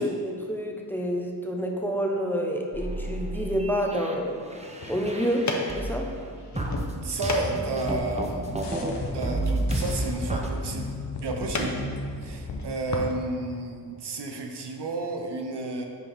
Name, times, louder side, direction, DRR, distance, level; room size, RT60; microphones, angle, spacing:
voice 1, 0.0-4.4 4.9-6.1, equal, 5° left, 1 dB, 0.9 m, -28 dB
sound 1, 2.7-6.2 6.6-8.9 9.2-10.5, right 1 dB, 15° right, 0.8 m, -31 dB
sound 2, 4.6-13.1, left 3 dB, 45° left, 0.9 m, -37 dB
voice 2, 6.9-8.5 9.1-10.9 11.2-11.8 12.2-15.9, right 2 dB, 75° right, 3 dB, 0.8 m, -31 dB
sound 3, 7.4-12.6, left 2 dB, 85° left, 0.9 m, -35 dB
8.2 x 4.6 x 3.6 m, 2.1 s
cardioid pair, 45°, 41 cm